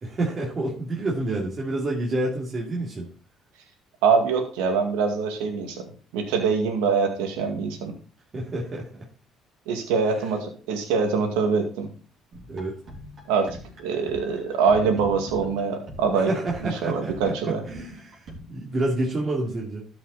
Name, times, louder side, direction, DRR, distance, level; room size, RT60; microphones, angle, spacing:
voice 1, 0.0-3.1 8.3-9.1 10.0-10.2 12.5-12.8 16.1-19.9, right 2 dB, 40° right, -3 dB, 2.8 m, -29 dB
voice 2, 4.0-5.8 6.1-7.9 9.7-11.9 13.3-13.5 13.8-16.3 16.8-17.6, right 5 dB, 90° right, 5 dB, 2.1 m, -24 dB
sound 1, 12.3-18.4, equal, 55° right, 4.7 m, -43 dB
13.0 x 5.9 x 4.1 m, 0.38 s
supercardioid pair, 75°, 0 cm